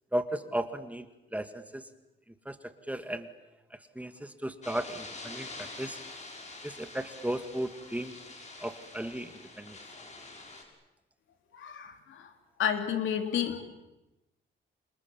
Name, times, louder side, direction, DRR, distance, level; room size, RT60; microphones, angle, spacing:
voice 1, 0.1-1.1 1.3-1.9 2.5-3.3 3.7-6.0 6.6-8.2 8.6-9.8, right 1 dB, 5° right, 9 dB, 2.1 m, -35 dB
sound 1, 4.6-10.6, left 2 dB, 35° left, 6.5 m, -46 dB
voice 2, 11.5-12.3 12.6-13.6, left 9 dB, 75° left, 7 dB, 3.4 m, -31 dB
29.0 x 26.5 x 7.2 m, 0.97 s
cardioid pair, 90°, 20 cm